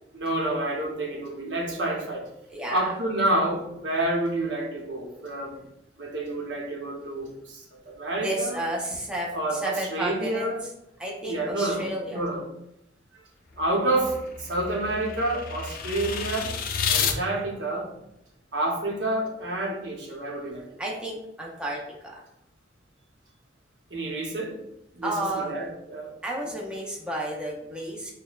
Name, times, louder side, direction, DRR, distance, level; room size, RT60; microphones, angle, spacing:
voice 1, 0.1-2.3 2.7-5.6 6.0-8.6 9.3-10.6 11.2-12.4 13.6-16.6 16.9-17.9 18.5-20.6 23.9-24.5 24.9-26.1, right 1 dB, 75° right, 0 dB, 0.9 m, -29 dB
voice 2, 2.5-2.9 8.2-10.7 11.0-12.2 20.8-22.2 25.0-25.5 26.2-28.1, right 1 dB, 5° right, -3 dB, 0.6 m, -32 dB
sound 1, 13.5-17.2, left 6 dB, 50° left, 0.4 m, -30 dB
6.1 x 2.2 x 2.3 m, 0.82 s
head